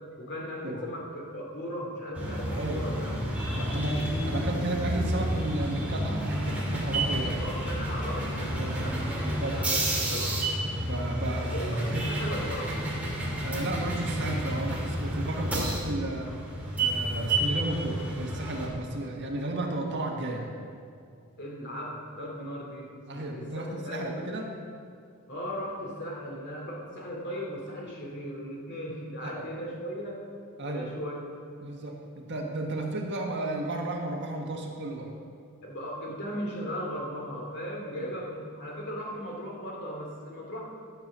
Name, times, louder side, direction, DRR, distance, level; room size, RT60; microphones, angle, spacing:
voice 1, 0.0-3.1 7.4-10.4 11.5-13.0 21.4-24.3 25.3-30.2 30.6-31.2 35.6-40.6, equal, 55° left, -2 dB, 2.9 m, -37 dB
sound 1, 2.1-18.7, right 1 dB, 5° right, 2.6 m, -30 dB
voice 2, 2.6-2.9 3.5-7.4 8.6-8.8 9.2-9.9 10.8-12.1 13.4-16.3 16.8-20.5 23.1-24.4 29.2-29.5 30.6-30.9 31.6-35.1 37.9-38.1, right 2 dB, 55° right, 0 dB, 1.7 m, -33 dB
12.5 x 7.0 x 7.4 m, 2.4 s
head